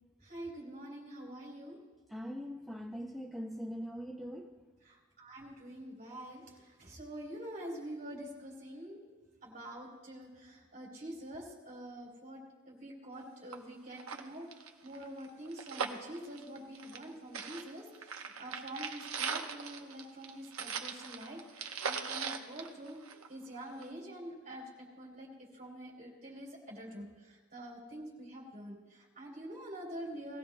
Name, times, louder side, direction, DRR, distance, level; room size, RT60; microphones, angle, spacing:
voice 1, 0.2-1.8 4.8-9.0 9.4-14.5 14.8-30.4, right 1 dB, 40° right, -2 dB, 3.4 m, -46 dB
voice 2, 2.1-4.5, equal, ahead, 1 dB, 0.4 m, -41 dB
sound 1, 13.2-13.3 13.5-13.6 13.9-17.1 17.3-23.4 23.8-23.9, right 6 dB, 80° right, 0.9 m, -40 dB
19.5 x 15.0 x 2.2 m, 1.3 s
head